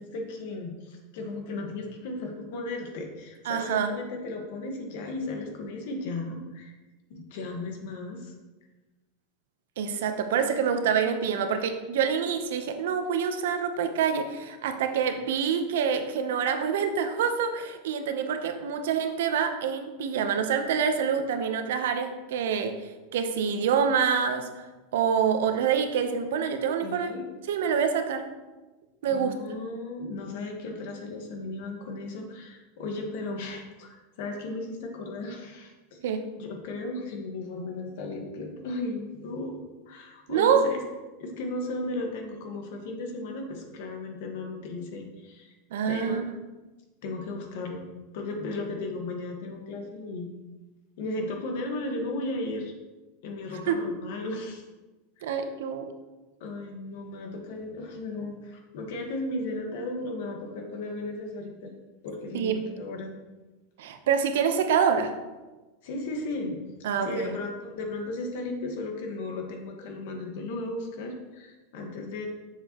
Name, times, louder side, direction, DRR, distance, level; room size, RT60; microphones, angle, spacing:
voice 1, 0.0-6.7 7.1-8.3 26.8-27.3 29.1-36.0 36.4-39.6 39.9-40.8 41.2-45.5 45.9-46.2 47.0-47.9 48.1-50.3 51.0-52.8 53.2-54.6 55.2-55.5 56.4-61.7 62.0-63.1 65.8-66.6 67.0-72.3, left 2 dB, 65° left, 3 dB, 1.5 m, -35 dB
voice 2, 3.5-3.9 9.8-24.7 24.9-27.1 27.5-28.3 29.0-29.4 36.0-36.3 40.3-40.7 45.7-46.3 53.7-53.8 55.2-55.9 62.3-62.7 63.8-65.1 66.8-67.3, right 7 dB, 80° right, 7 dB, 0.8 m, -26 dB
7.5 x 6.8 x 3.0 m, 1.2 s
supercardioid pair, 145°, 0 cm